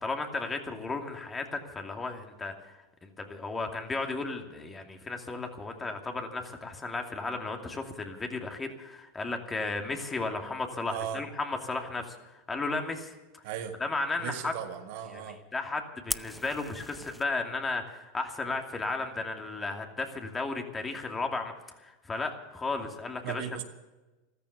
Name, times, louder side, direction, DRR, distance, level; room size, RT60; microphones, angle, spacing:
voice 1, 0.0-13.4 13.8-14.5 15.1-23.5, left 3 dB, 20° left, 4 dB, 2.6 m, -34 dB
voice 2, 10.9-11.2 13.4-13.7 14.2-15.4 23.2-23.6, right 9 dB, 65° right, 6 dB, 1.8 m, -36 dB
Fire, 16.1-17.2, equal, ahead, 0.4 m, -37 dB
14.0 x 14.0 x 7.1 m, 1.1 s
hypercardioid pair, 100°, 0 cm